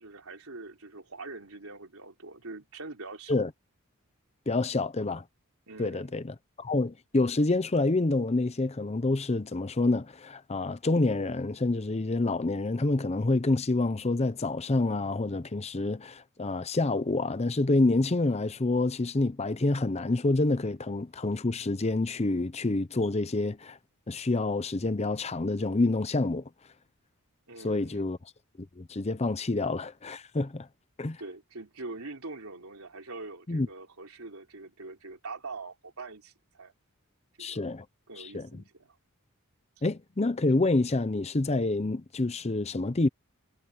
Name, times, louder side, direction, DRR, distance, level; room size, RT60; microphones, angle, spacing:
voice 1, 0.0-3.4 5.7-6.3 27.5-28.1 31.2-36.7 37.4-37.8 38.1-39.0, right 3 dB, 75° right, 3.5 m, -43 dB
voice 2, 4.5-5.2 5.8-23.8 24.1-26.4 27.6-28.2 28.8-30.7 31.0-31.2 33.5-33.7 37.4-37.8 38.2-38.5 39.8-43.1, left 2 dB, 30° left, 0.7 m, -27 dB
head